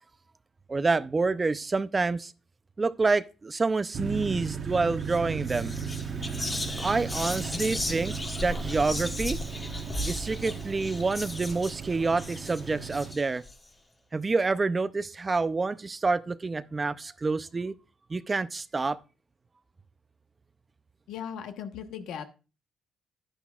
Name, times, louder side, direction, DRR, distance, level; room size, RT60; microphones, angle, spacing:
voice 1, 0.7-2.3 2.8-5.7 6.8-9.4 10.1-13.4 14.1-17.7 18.1-19.0, right 3 dB, 25° right, 0.5 m, -28 dB
sound 1, 3.9-13.1, right 7 dB, 55° right, 1.3 m, -36 dB
Whispering, 5.0-5.2 5.5-13.5, left 2 dB, 20° left, 1.3 m, -36 dB
voice 2, 21.1-22.2, left 8 dB, 85° left, 1.1 m, -37 dB
10.5 x 9.9 x 2.4 m
cardioid pair, 90°, 0 cm